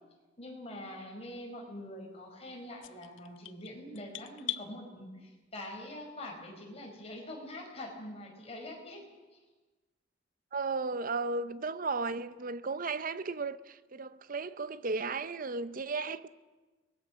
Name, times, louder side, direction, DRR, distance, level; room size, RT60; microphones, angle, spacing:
voice 1, 0.4-9.0, left 1 dB, 30° left, 4.9 m, -44 dB
sound 1, 2.8-4.7, left 13 dB, 75° left, 0.8 m, -40 dB
voice 2, 10.5-16.3, right 3 dB, 45° right, 0.7 m, -35 dB
23.5 x 20.0 x 6.3 m
head